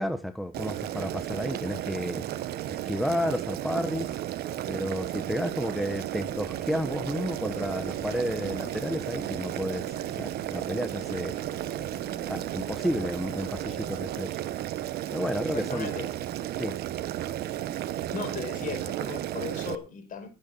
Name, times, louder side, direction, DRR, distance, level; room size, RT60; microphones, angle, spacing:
voice 1, 0.0-4.2 4.7-11.5 12.3-14.4 15.1-15.9 16.6-16.8, equal, ahead, 1.2 m, -32 dB
Boiling, 0.5-19.8, right 12 dB, 70° right, 1.1 m, -34 dB
sound 1, 6.2-14.3, left 8 dB, 75° left, 2.7 m, -50 dB
voice 2, 15.5-16.1 18.1-20.3, left 6 dB, 50° left, 5.3 m, -37 dB
17.5 x 8.8 x 4.1 m
cardioid pair, 110°, 17 cm